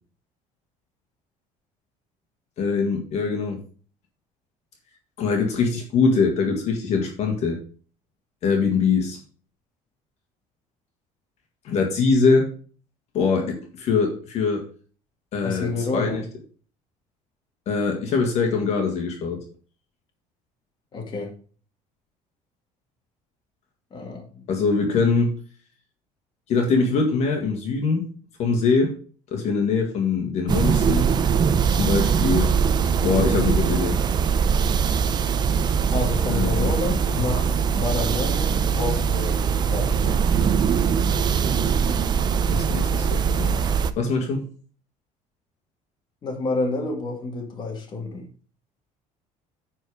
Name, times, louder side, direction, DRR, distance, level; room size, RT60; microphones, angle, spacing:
voice 1, 2.6-3.6 5.2-7.6 8.4-9.2 11.7-12.5 13.1-14.6 15.3-16.2 17.7-19.4 24.5-25.3 26.5-28.0 28.4-29.0 29.3-31.1 31.8-32.6 33.0-34.0 36.3-36.7 42.5-43.6 44.0-44.5, left 4 dB, 50° left, 1 dB, 1.8 m, -23 dB
voice 2, 15.4-16.2 20.9-21.3 23.9-24.5 35.9-39.4 39.6-40.4 46.2-48.3, left 3 dB, 35° left, 1 dB, 2.0 m, -29 dB
sound 1, 30.5-43.9, right 6 dB, 30° right, 0.5 m, -22 dB
9.7 x 4.5 x 4.9 m, 0.41 s
cardioid pair, 150°, 14 cm